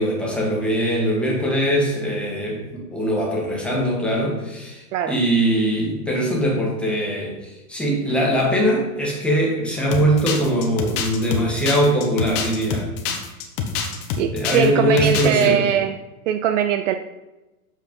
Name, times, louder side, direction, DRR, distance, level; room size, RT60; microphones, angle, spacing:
voice 1, 0.0-12.9 14.3-15.6, equal, ahead, -4 dB, 1.4 m, -21 dB
sound 1, 9.9-14.7 15.0-15.5, left 6 dB, 40° left, 1.1 m, -26 dB
voice 2, 14.2-16.0 16.3-16.9, right 9 dB, 55° right, 9 dB, 0.5 m, -21 dB
8.0 x 4.4 x 5.3 m, 1.1 s
supercardioid pair, 165°, 46 cm